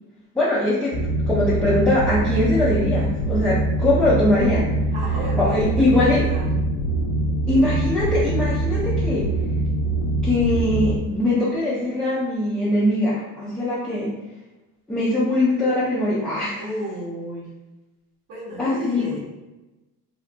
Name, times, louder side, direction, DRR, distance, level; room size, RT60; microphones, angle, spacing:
voice 1, 0.3-1.0 1.3-4.7 5.4-6.2 7.5-9.3 10.2-14.1 14.9-16.6 18.6-19.1, left 1 dB, 5° left, -10 dB, 0.4 m, -21 dB
sound 1, 0.9-11.0, right 2 dB, 70° left, 0.5 m, -23 dB
voice 2, 4.9-6.6 7.7-7.9 16.6-17.5 18.3-19.2, equal, 60° right, -7 dB, 0.8 m, -33 dB
2.9 x 2.3 x 2.5 m, 1.1 s
cardioid pair, 145°, 34 cm